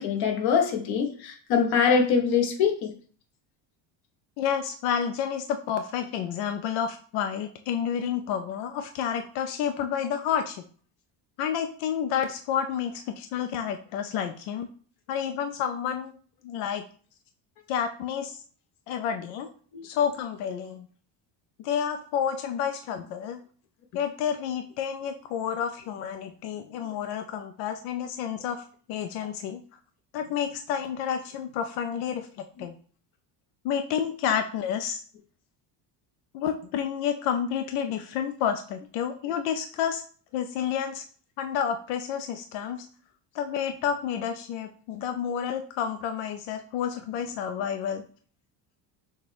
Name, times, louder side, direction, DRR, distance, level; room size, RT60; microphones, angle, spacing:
voice 1, 0.0-2.9 19.7-19.8, left 6 dB, 55° left, 3 dB, 1.0 m, -23 dB
voice 2, 4.4-10.6 11.4-14.7 15.1-16.1 16.4-16.8 17.7-18.4 18.9-19.5 19.8-20.9 21.6-23.4 23.9-29.6 30.1-32.7 33.6-35.0 36.3-40.0 40.3-41.0 41.4-42.8 43.3-48.0, left 8 dB, 90° left, 7 dB, 0.5 m, -30 dB
6.3 x 2.2 x 3.3 m, 0.44 s
cardioid pair, 175°, 45 cm